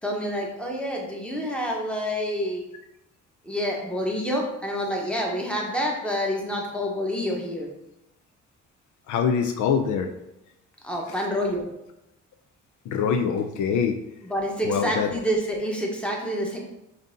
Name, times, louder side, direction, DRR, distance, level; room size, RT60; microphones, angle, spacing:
voice 1, 0.0-2.6 3.4-7.7 10.8-11.7 14.2-16.6, equal, 5° left, -1 dB, 1.0 m, -28 dB
voice 2, 9.1-10.1 12.9-14.0 14.6-15.1, left 7 dB, 75° left, 5 dB, 0.5 m, -24 dB
5.2 x 2.7 x 2.6 m, 0.86 s
cardioid pair, 90°, 30 cm